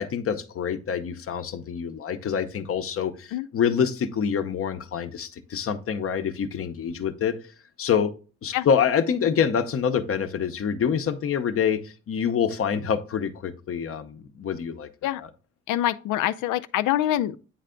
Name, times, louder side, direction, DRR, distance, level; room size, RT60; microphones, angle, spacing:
voice 1, 0.0-7.4 7.8-8.1 8.4-14.9 15.2-15.3, left 7 dB, 50° left, 0.8 m, -26 dB
voice 2, 15.7-17.4, left 13 dB, 85° left, 0.5 m, -25 dB
9.2 x 3.3 x 3.7 m
cardioid pair, 90°, 30 cm